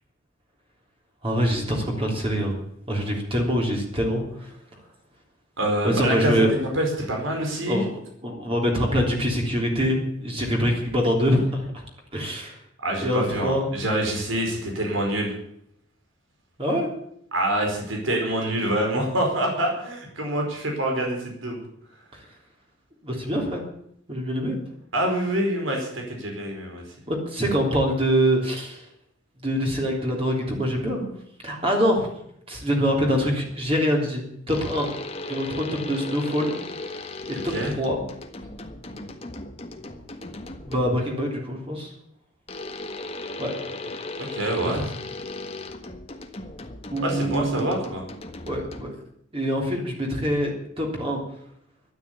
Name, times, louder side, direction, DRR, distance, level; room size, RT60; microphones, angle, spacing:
voice 1, 1.2-2.6 2.9-4.5 5.8-6.5 7.7-7.9 8.2-11.7 12.1-12.6 13.0-13.7 16.6-16.9 23.0-23.6 24.1-24.6 27.1-28.8 29.4-31.1 31.4-32.1 32.5-34.9 35.3-36.6 37.3-38.1 40.7-41.9 43.4-43.5 44.7-44.8 46.9-47.7 48.4-48.9 49.3-51.2, equal, 30° right, 0 dB, 3.5 m, -24 dB
voice 2, 5.6-6.5 6.7-7.8 12.8-15.3 17.3-21.6 24.9-26.8 37.5-37.7 44.3-44.9 47.0-48.0, right 1 dB, 85° right, 1 dB, 4.9 m, -26 dB
sound 1, 34.5-41.1 42.5-49.1, left 2 dB, 30° left, 1.4 m, -37 dB
13.0 x 11.5 x 8.5 m, 0.73 s
head